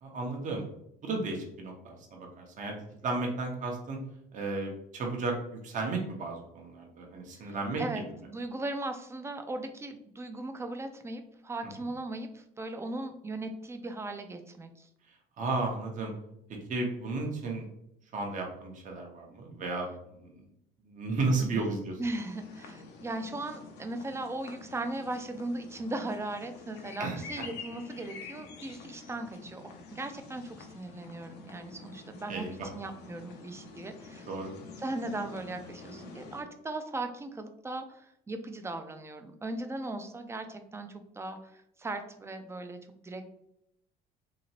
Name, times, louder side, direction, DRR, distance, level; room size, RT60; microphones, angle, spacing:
voice 1, 0.0-0.7 1.0-2.7 3.0-4.0 4.3-5.3 5.6-7.8 15.4-16.1 16.7-17.6 18.1-19.9 20.2-20.4 20.8-21.9 27.0-27.2 32.3-32.7 34.3-34.5, right 3 dB, 50° right, 1 dB, 0.9 m, -33 dB
voice 2, 7.4-14.9 21.4-21.7 22.0-29.6 29.9-34.3 34.8-42.8 43.0-43.3, right 2 dB, 15° right, 7 dB, 0.4 m, -38 dB
sound 1, 22.2-36.4, left 4 dB, 70° left, 0.6 m, -48 dB
2.9 x 2.8 x 2.8 m, 0.78 s
supercardioid pair, 95°, 17 cm